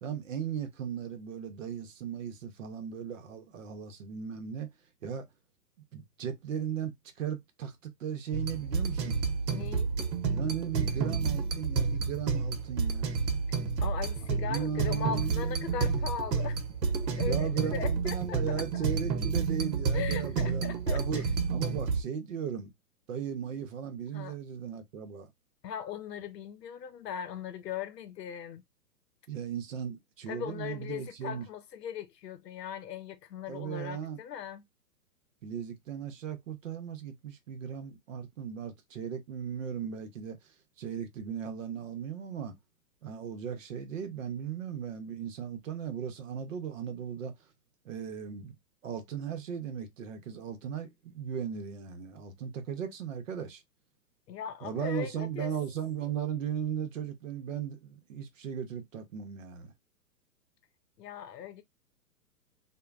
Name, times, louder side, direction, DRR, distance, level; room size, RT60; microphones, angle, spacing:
voice 1, 0.0-4.7 5.0-5.3 5.9-9.2 10.4-13.1 14.5-16.1 17.3-22.7 23.1-25.3 29.3-31.5 33.5-34.2 35.4-40.4 40.8-42.6 43.0-47.3 47.8-48.5 48.8-53.6 54.6-59.7, right 8 dB, 55° right, 0.7 m, -37 dB
sound 1, 8.3-22.0, right 5 dB, 90° right, 0.8 m, -30 dB
voice 2, 9.5-9.9 13.8-16.6 17.0-18.8 19.9-21.2 24.1-24.3 25.6-28.6 30.3-34.7 54.3-55.5 61.0-61.6, left 8 dB, 80° left, 0.7 m, -39 dB
3.0 x 2.2 x 2.3 m
hypercardioid pair, 160°, 48 cm